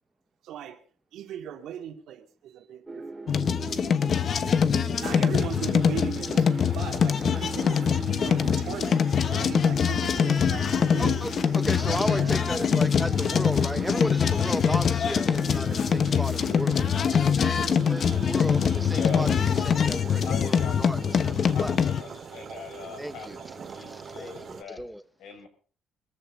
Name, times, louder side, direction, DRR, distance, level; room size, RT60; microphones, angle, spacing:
voice 1, 0.4-0.8 1.1-3.8 5.0-11.2 11.8-12.4 22.4-22.5, right 10 dB, 80° right, 2.7 m, -39 dB
sound 1, 2.9-19.5, right 3 dB, 20° right, 2.3 m, -38 dB
sound 2, 3.3-22.0, left 7 dB, 45° left, 1.1 m, -24 dB
sound 3, 5.2-24.6, right 6 dB, 40° right, 2.2 m, -45 dB
voice 2, 11.0-21.8 22.3-22.6 23.0-23.4 23.7-25.0, equal, ahead, 0.9 m, -35 dB
voice 3, 18.9-19.3 19.8-19.9 20.2-20.9 21.5-24.8 25.2-25.5, left 7 dB, 80° left, 6.3 m, -41 dB
23.0 x 14.0 x 3.9 m
cardioid pair, 130°, 0 cm